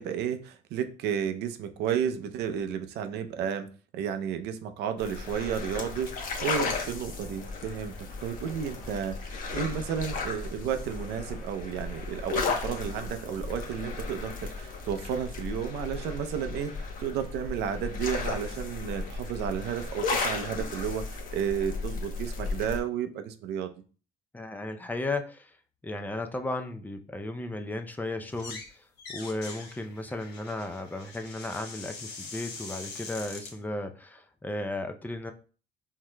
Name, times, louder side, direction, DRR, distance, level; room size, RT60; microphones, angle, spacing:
voice 1, 0.0-23.7, right 8 dB, 80° right, 8 dB, 0.6 m, -32 dB
sound 1, 5.0-22.8, left 4 dB, 55° left, 0.9 m, -35 dB
voice 2, 24.3-25.6 25.8-28.8 29.1-35.3, left 2 dB, 10° left, 6 dB, 0.5 m, -35 dB
sound 2, 28.3-28.7 29.0-33.5, left 4 dB, 85° left, 1.0 m, -43 dB
4.6 x 3.6 x 2.2 m, 0.38 s
cardioid pair, 110°, 17 cm